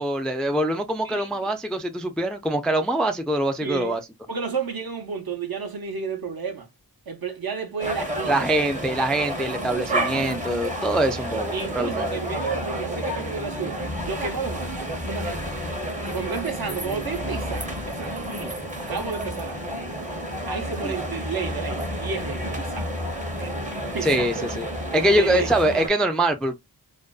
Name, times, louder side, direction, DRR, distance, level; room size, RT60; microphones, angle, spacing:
voice 1, 0.0-4.0 8.3-12.1 20.8-20.9 24.0-24.7 24.9-26.6, right 1 dB, ahead, 0.3 m, -24 dB
voice 2, 1.0-1.5 3.6-4.0 4.3-6.7 7.1-8.4 11.5-15.5 16.0-19.7 20.5-22.9 23.4-24.3 25.2-25.5, right 5 dB, 60° right, 0.8 m, -32 dB
sound 1, 7.8-25.9, equal, 20° right, 0.7 m, -30 dB
2.5 x 2.2 x 2.3 m
wide cardioid pair, 60°, 42 cm